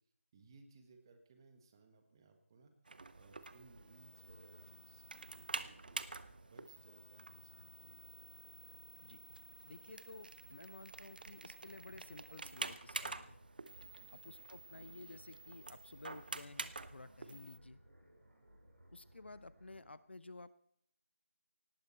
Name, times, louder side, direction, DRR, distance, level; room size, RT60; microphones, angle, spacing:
voice 1, 0.3-2.7 3.1-8.0 13.8-14.1, right 3 dB, 20° right, 6 dB, 1.6 m, -63 dB
sound 1, 2.9-17.6, right 3 dB, 40° right, 0.8 m, -48 dB
sound 2, 3.1-19.9, right 1 dB, 55° right, 7.6 m, -63 dB
voice 2, 9.6-13.4 14.1-17.8 18.9-20.6, left 2 dB, 50° left, 16 dB, 0.7 m, -54 dB
18.5 x 15.5 x 4.3 m, 0.68 s
figure-of-eight pair, 160°, 8 cm